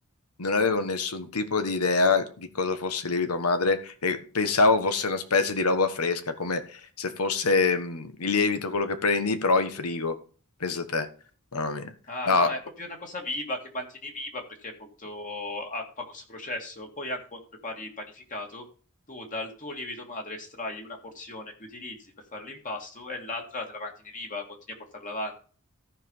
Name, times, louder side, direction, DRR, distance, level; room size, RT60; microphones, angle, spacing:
voice 1, 0.4-10.1 10.6-11.1 11.5-11.9 12.3-12.5, left 3 dB, 85° left, 9 dB, 1.3 m, -25 dB
voice 2, 12.1-18.6 19.1-25.4, left 2 dB, 35° left, 2 dB, 2.0 m, -37 dB
14.5 x 5.1 x 5.5 m, 0.39 s
head